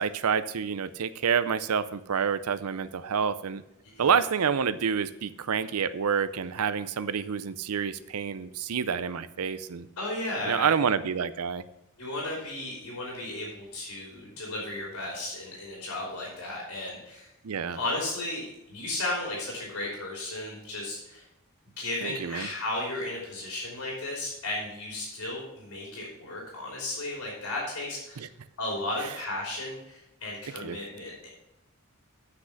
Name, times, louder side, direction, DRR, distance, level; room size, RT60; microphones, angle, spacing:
voice 1, 0.0-3.6 4.0-9.9 10.5-11.6 17.4-17.8 22.0-22.5 28.2-28.3 30.6-30.8, right 6 dB, 90° right, 14 dB, 0.5 m, -28 dB
voice 2, 10.0-10.8 12.0-17.3 17.7-21.2 21.8-28.3 28.6-31.3, left 2 dB, 90° left, -4 dB, 3.2 m, -34 dB
7.9 x 6.0 x 6.5 m, 0.89 s
head